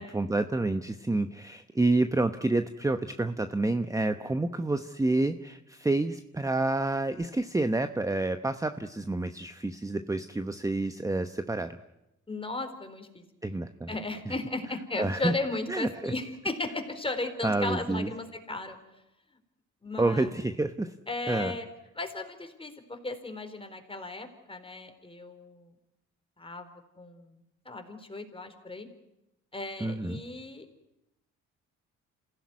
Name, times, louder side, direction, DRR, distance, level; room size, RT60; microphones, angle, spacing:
voice 1, 0.0-11.8 13.4-14.0 14.3-14.4 15.0-15.3 15.7-16.1 17.4-18.1 20.0-20.9 21.3-21.5 29.8-30.2, right 2 dB, 10° right, 9 dB, 1.0 m, -29 dB
voice 2, 12.3-13.2 13.9-18.8 19.8-20.3 21.1-21.7 22.0-25.7 26.4-26.7 27.0-27.4 27.7-28.9 29.5-30.7, left 2 dB, 20° left, 6 dB, 4.1 m, -36 dB
27.5 x 16.5 x 9.6 m, 0.89 s
cardioid pair, 90°, 30 cm